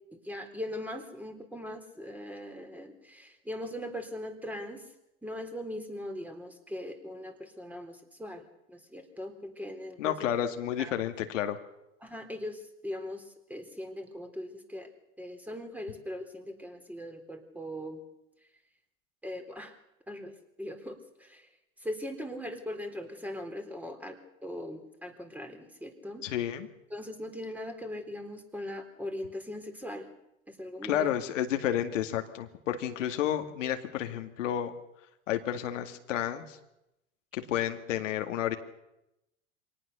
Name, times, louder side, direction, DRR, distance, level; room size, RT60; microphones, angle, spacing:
voice 1, 0.1-4.8 5.2-10.2 10.8-10.9 12.0-14.9 15.2-18.0 19.2-19.7 20.1-21.5 21.8-24.2 24.4-26.2 26.9-30.1 30.5-31.1, left 1 dB, 5° right, 5 dB, 3.7 m, -40 dB
voice 2, 10.0-11.6 26.2-26.7 30.8-34.7 35.3-36.6 37.3-38.6, left 10 dB, 80° left, 6 dB, 2.2 m, -31 dB
24.5 x 18.5 x 6.9 m, 0.88 s
hypercardioid pair, 100°, 37 cm